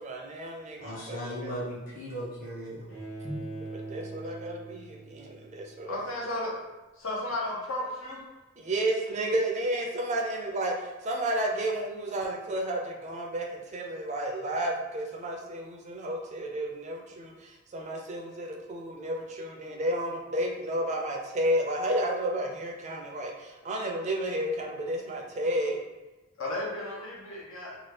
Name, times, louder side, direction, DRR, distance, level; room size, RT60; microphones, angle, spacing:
voice 1, 0.0-1.5 3.7-6.0 8.6-25.8, right 1 dB, 35° right, 0 dB, 0.4 m, -32 dB
voice 2, 0.8-2.9 3.2-3.4, equal, 45° left, -6 dB, 1.1 m, -37 dB
Bowed string instrument, 2.9-5.9, right 3 dB, 75° left, 1.2 m, -42 dB
voice 3, 5.8-6.6 7.0-8.2 26.4-27.8, left 1 dB, 90° left, -4 dB, 0.8 m, -34 dB
2.9 x 2.3 x 3.1 m, 1.2 s
head